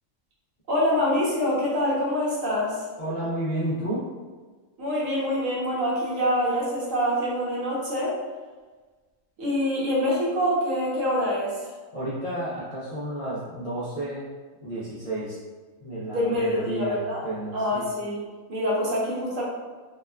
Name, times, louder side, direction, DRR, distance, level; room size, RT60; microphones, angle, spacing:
voice 1, 0.7-2.8 4.8-8.2 9.4-11.6 16.1-18.2 18.5-19.4, equal, 80° right, -5 dB, 1.2 m, -25 dB
voice 2, 3.0-4.1 11.9-14.3 14.6-15.4 15.8-17.9, right 1 dB, 55° left, -10 dB, 0.4 m, -31 dB
2.8 x 2.2 x 2.3 m, 1.4 s
omnidirectional pair, 1.4 m